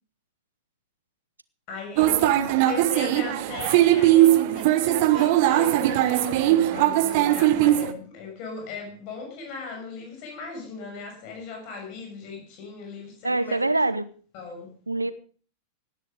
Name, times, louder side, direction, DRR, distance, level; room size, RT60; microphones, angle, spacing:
voice 1, 1.7-2.3 2.7-13.6 14.3-14.7, left 4 dB, 45° left, 6.5 m, -37 dB
sound 1, 2.0-7.9, right 14 dB, 50° right, 1.4 m, -20 dB
voice 2, 13.2-14.1 14.9-15.1, right 2 dB, 85° right, 1.0 m, -25 dB
17.5 x 11.5 x 5.1 m
figure-of-eight pair, 90°, 0 cm